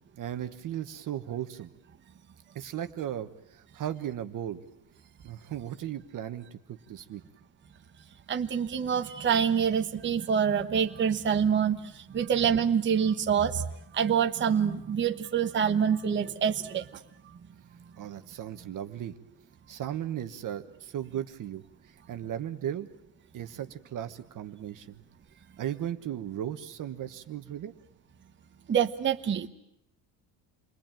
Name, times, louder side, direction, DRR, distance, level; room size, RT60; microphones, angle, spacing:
voice 1, 0.2-1.7 2.5-4.6 5.2-7.2 18.0-19.1 19.7-22.9 23.3-25.0 25.6-27.7, right 10 dB, 40° right, 8 dB, 1.3 m, -36 dB
voice 2, 8.3-13.6 13.9-16.9 28.7-29.5, right 7 dB, 25° right, 5 dB, 1.1 m, -26 dB
29.0 x 22.5 x 9.1 m, 0.77 s
cardioid pair, 155°, 47 cm